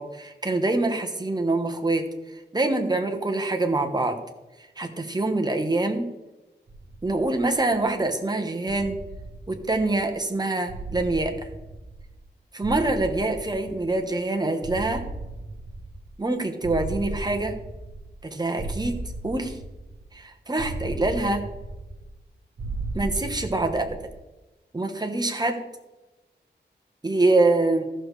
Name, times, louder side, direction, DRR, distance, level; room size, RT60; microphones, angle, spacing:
voice 1, 0.0-2.1 2.5-4.2 4.8-6.1 7.0-9.0 9.5-11.4 12.5-15.0 16.2-17.6 18.3-19.0 19.2-19.6 20.1-21.4 22.9-24.0 24.7-25.6 27.0-27.8, right 2 dB, 20° right, 4 dB, 1.1 m, -25 dB
sound 1, 6.7-8.0 8.7-10.2 10.7-12.3 12.6-14.2 14.6-16.3 16.6-18.2 18.6-20.2 20.6-22.2 22.6-24.2, right 2 dB, 85° right, 0.9 m, -36 dB
14.5 x 6.6 x 3.2 m, 1.1 s
wide cardioid pair, 125°, 18 cm